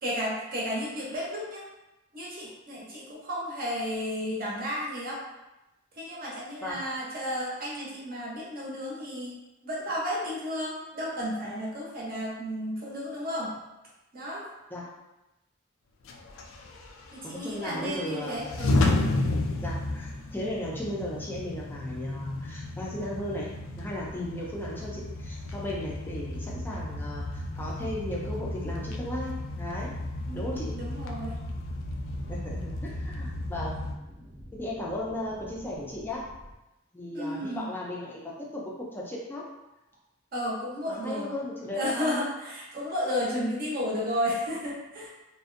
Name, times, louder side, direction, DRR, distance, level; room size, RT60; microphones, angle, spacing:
voice 1, 0.0-1.6 2.1-5.2 6.0-9.3 9.6-13.5 14.1-14.4 17.1-18.8 30.3-31.4 37.1-37.7 40.3-41.3 41.7-45.1, equal, 45° right, -5 dB, 0.6 m, -33 dB
sound 1, 16.0-33.9, left 2 dB, 90° left, 0.3 m, -33 dB
voice 2, 17.2-18.6 19.6-23.5 23.8-29.9 30.3-30.7 32.3-33.8 34.5-36.2 36.9-39.4 40.9-42.3 43.3-43.6, left 1 dB, 10° left, -5 dB, 0.4 m, -36 dB
sound 2, 29.5-36.5, equal, 85° right, 0.7 m, -52 dB
2.5 x 2.1 x 2.4 m, 0.97 s
head